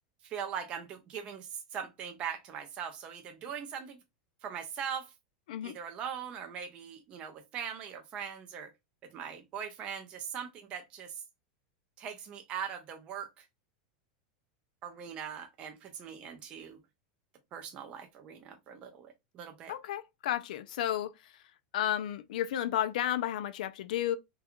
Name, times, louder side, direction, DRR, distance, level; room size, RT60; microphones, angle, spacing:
voice 1, 0.2-4.0 4.4-5.1 5.6-8.7 9.1-11.2 12.0-13.4 14.8-16.8 17.5-19.7, right 7 dB, 25° right, 0.3 m, -41 dB
voice 2, 19.7-21.1 21.7-24.2, left 11 dB, 80° left, 0.3 m, -32 dB
2.3 x 2.2 x 2.8 m
supercardioid pair, 170°, 4 cm